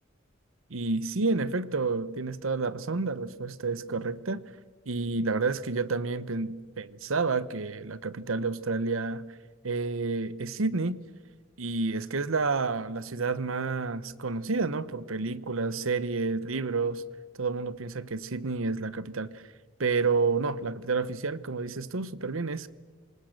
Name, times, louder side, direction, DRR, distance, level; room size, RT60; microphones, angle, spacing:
voice 1, 0.7-4.5 4.9-9.2 9.6-11.0 11.6-17.0 17.4-19.4 19.8-22.7, right 4 dB, 85° right, 0.9 m, -30 dB
27.0 x 25.5 x 6.6 m
head